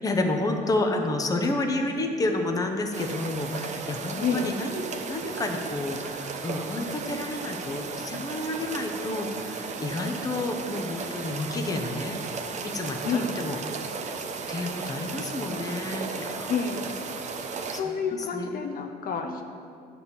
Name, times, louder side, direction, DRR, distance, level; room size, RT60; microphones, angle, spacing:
voice 1, 0.0-12.2 12.6-13.6 14.5-16.5 17.7-17.8 18.1-18.6 19.3-19.4, left 2 dB, 20° left, 3 dB, 0.9 m, -30 dB
sound 1, 2.9-17.8, right 5 dB, 45° right, 0.8 m, -35 dB
voice 2, 4.2-4.5 13.0-13.3 16.5-16.8 17.8-19.4, left 6 dB, 55° left, 4 dB, 0.8 m, -28 dB
9.6 x 4.3 x 7.1 m, 2.4 s
cardioid pair, 110°, 17 cm